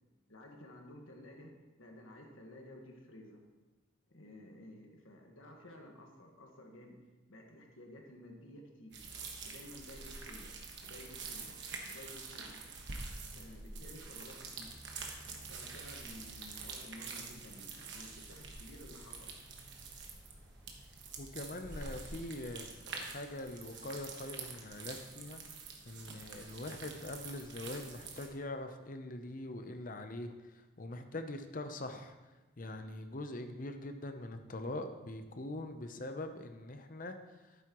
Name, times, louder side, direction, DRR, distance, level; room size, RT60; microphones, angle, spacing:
voice 1, 0.3-1.5 1.8-3.4 4.1-7.0 7.3-9.0 9.4-10.5 10.8-11.6 11.9-12.6 13.3-14.7 15.2-19.4, left 1 dB, 80° left, 1 dB, 1.6 m, -53 dB
sound 1, 8.9-28.3, right 4 dB, 60° right, 1.3 m, -47 dB
sound 2, 14.6-21.5, equal, 10° left, 0.9 m, -59 dB
voice 2, 21.2-25.6 25.9-32.2 32.6-37.6, left 1 dB, 40° left, 7 dB, 0.7 m, -43 dB
11.5 x 9.1 x 3.0 m, 1.1 s
head